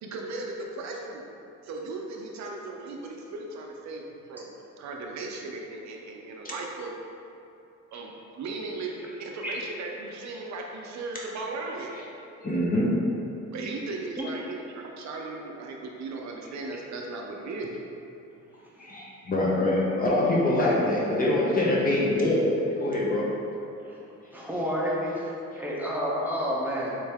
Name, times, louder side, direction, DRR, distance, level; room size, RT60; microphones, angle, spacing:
voice 1, 0.0-1.3 1.6-4.5 4.8-6.9 7.9-11.9 13.5-17.8, right 3 dB, 65° right, 0 dB, 0.5 m, -37 dB
voice 2, 12.4-12.9 18.8-23.3, left 1 dB, 30° left, -5 dB, 0.7 m, -24 dB
voice 3, 24.3-27.0, equal, 5° right, -6 dB, 0.8 m, -30 dB
3.2 x 2.6 x 3.5 m, 2.7 s
cardioid pair, 90°, 30 cm